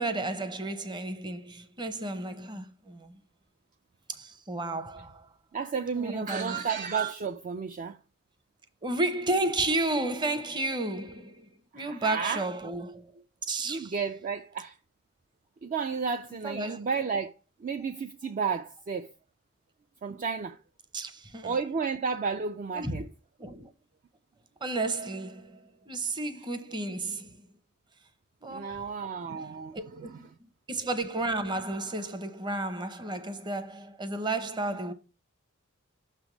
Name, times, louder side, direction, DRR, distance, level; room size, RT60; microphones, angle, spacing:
voice 1, 0.0-3.2 4.1-5.3 5.9-6.6 8.8-13.9 16.3-16.9 20.9-21.6 22.7-23.0 23.4-23.7 24.6-27.4 28.4-29.0 29.7-30.3 30.7-34.9, right 2 dB, 20° right, 0.7 m, -32 dB
voice 2, 5.5-8.0 11.7-12.4 13.7-14.7 15.6-17.3 17.6-19.1 20.0-20.6 21.4-23.0 28.5-29.8, right 5 dB, 40° right, 0.3 m, -32 dB
6.3 x 3.4 x 5.9 m
head